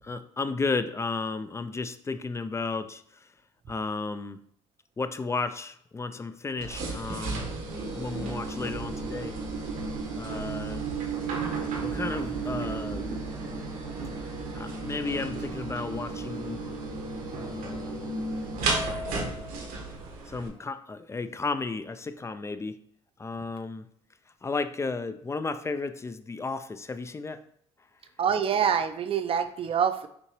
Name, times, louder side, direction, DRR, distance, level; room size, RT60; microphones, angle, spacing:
voice 1, 0.0-3.3 3.7-4.4 5.0-7.4 7.9-9.4 10.1-10.9 11.8-13.1 14.5-16.6 17.5-18.1 20.3-22.8 23.2-23.9 24.4-27.4, left 4 dB, 20° left, 11 dB, 0.4 m, -33 dB
sound 1, 6.6-20.5, right 3 dB, 70° right, 1.2 m, -33 dB
voice 2, 28.2-30.1, right 7 dB, 40° right, 10 dB, 0.5 m, -25 dB
6.0 x 2.7 x 3.0 m, 0.66 s
supercardioid pair, 75°, 14 cm